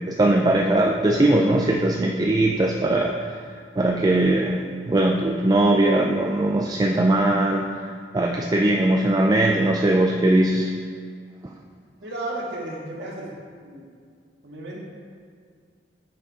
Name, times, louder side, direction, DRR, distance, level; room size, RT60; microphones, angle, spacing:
voice 1, 0.0-3.2 3.8-4.6 4.9-7.7 8.1-10.7 11.4-11.5, right 1 dB, 20° right, 1 dB, 0.4 m, -20 dB
voice 2, 12.0-13.3 13.6-13.8 14.4-14.8, right 2 dB, 70° right, -3 dB, 1.7 m, -33 dB
8.8 x 4.9 x 4.8 m, 2.1 s
head